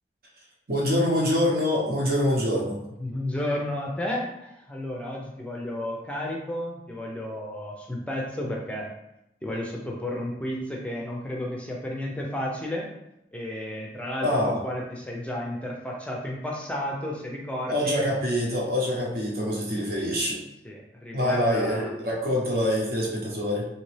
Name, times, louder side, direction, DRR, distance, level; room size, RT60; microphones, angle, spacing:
voice 1, 0.7-2.8 14.2-14.6 17.7-20.4 21.1-23.7, left 1 dB, 55° right, -4 dB, 1.0 m, -25 dB
voice 2, 3.0-8.9 9.4-12.9 13.3-18.0 20.6-21.9, left 1 dB, 5° left, -2 dB, 0.6 m, -32 dB
4.2 x 2.9 x 3.2 m, 0.87 s
head